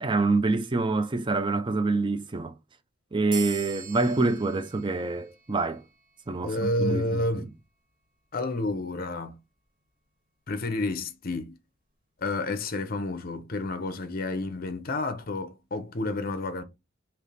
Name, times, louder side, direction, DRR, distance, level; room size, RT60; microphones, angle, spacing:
voice 1, 0.0-2.5 3.1-5.8 6.3-7.5, right 3 dB, 25° right, 0.5 m, -26 dB
sound 1, 3.3-6.3, right 5 dB, 45° right, 1.9 m, -42 dB
voice 2, 6.4-7.5 8.3-9.4 10.5-11.6 12.2-16.6, left 2 dB, 45° left, 0.7 m, -30 dB
3.3 x 2.9 x 4.1 m
head